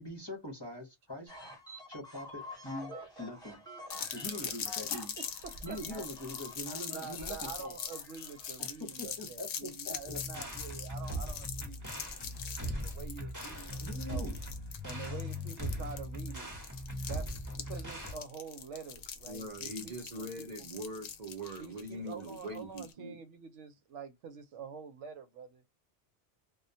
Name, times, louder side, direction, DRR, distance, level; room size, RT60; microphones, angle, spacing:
voice 1, 0.0-1.3 1.9-3.6 4.1-5.1 5.6-7.8 8.6-10.2 13.8-14.4, left 1 dB, 25° left, 0.6 m, -43 dB
sound 1, 1.3-8.8, equal, 5° left, 1.1 m, -49 dB
sound 2, 3.9-22.9, left 7 dB, 65° left, 0.7 m, -43 dB
voice 2, 4.0-4.4 5.2-5.8 6.9-14.3 14.8-16.5 17.0-20.7 21.6-25.6, right 5 dB, 80° right, 0.9 m, -47 dB
sound 3, 10.0-18.2, equal, 20° right, 0.8 m, -39 dB
voice 3, 19.3-23.2, right 1 dB, 45° right, 0.6 m, -42 dB
2.2 x 2.2 x 2.6 m
omnidirectional pair, 1.2 m